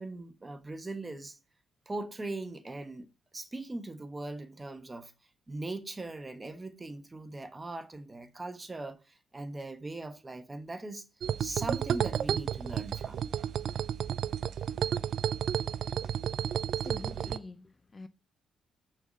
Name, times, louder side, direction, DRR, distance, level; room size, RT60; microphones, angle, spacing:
voice 1, 0.0-1.4 1.9-5.1 5.5-11.1 11.4-13.3, right 2 dB, 20° right, 1.1 m, -40 dB
sound 1, 11.2-17.4, right 9 dB, 65° right, 0.4 m, -32 dB
voice 2, 16.6-18.1, left 3 dB, 25° left, 0.5 m, -47 dB
6.4 x 4.0 x 6.3 m
cardioid pair, 90°, 0 cm